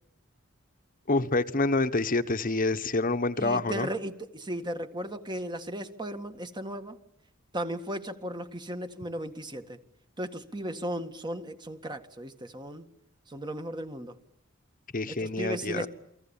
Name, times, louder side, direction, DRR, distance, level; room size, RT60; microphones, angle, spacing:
voice 1, 1.1-3.9 14.9-15.9, left 3 dB, 45° left, 1.2 m, -27 dB
voice 2, 3.4-7.0 7.5-9.8 10.2-12.9 13.3-14.2 15.1-15.9, right 1 dB, 20° right, 1.9 m, -36 dB
29.5 x 25.0 x 7.3 m
head